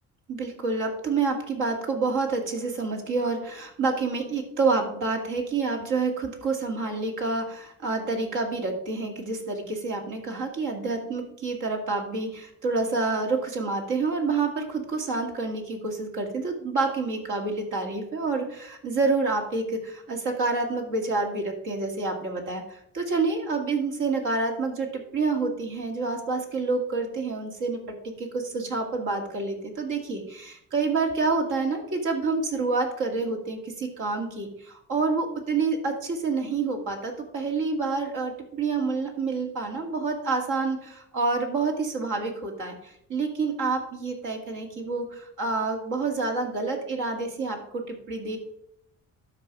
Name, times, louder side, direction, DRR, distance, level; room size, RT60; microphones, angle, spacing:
voice 1, 0.3-22.6 22.9-48.4, right 3 dB, 80° right, 2 dB, 2.3 m, -28 dB
12.5 x 4.8 x 4.8 m, 0.72 s
cardioid pair, 90°, 30 cm